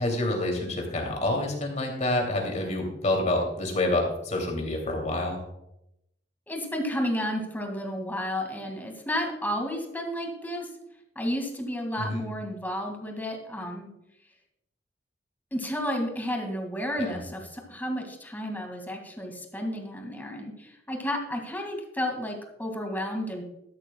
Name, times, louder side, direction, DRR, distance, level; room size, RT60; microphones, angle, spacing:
voice 1, 0.0-5.4 12.0-12.3 17.0-17.2, left 1 dB, 40° left, 1 dB, 2.7 m, -28 dB
voice 2, 6.5-10.7 11.2-13.9 15.5-23.4, equal, 10° left, 3 dB, 2.0 m, -32 dB
14.0 x 11.5 x 2.3 m, 0.83 s
head